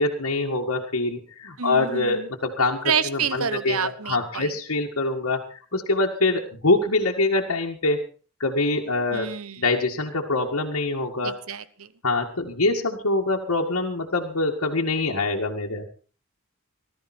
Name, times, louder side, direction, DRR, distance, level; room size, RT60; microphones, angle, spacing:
voice 1, 0.0-8.0 8.4-9.3 9.6-11.3 12.0-15.9, left 2 dB, 85° left, -1 dB, 2.0 m, -24 dB
voice 2, 1.6-2.3 2.8-4.5 9.1-9.6 11.2-11.9, right 7 dB, 80° right, 15 dB, 1.1 m, -28 dB
19.0 x 13.0 x 4.4 m, 0.39 s
head